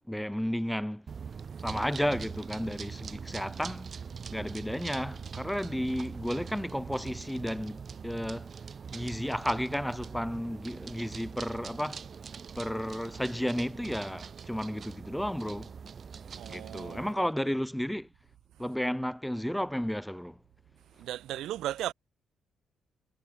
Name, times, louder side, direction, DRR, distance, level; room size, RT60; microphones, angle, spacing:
voice 1, 0.1-1.1 1.6-3.9 4.3-8.5 8.9-12.0 12.5-15.7 16.5-18.1 18.6-20.4, equal, 5° left, 1.4 m, -33 dB
sound 1, 1.1-17.1, right 6 dB, 45° right, 0.5 m, -43 dB
voice 2, 16.3-17.3 21.0-21.9, right 13 dB, 80° right, 2.2 m, -36 dB
cardioid pair, 90°, 0 cm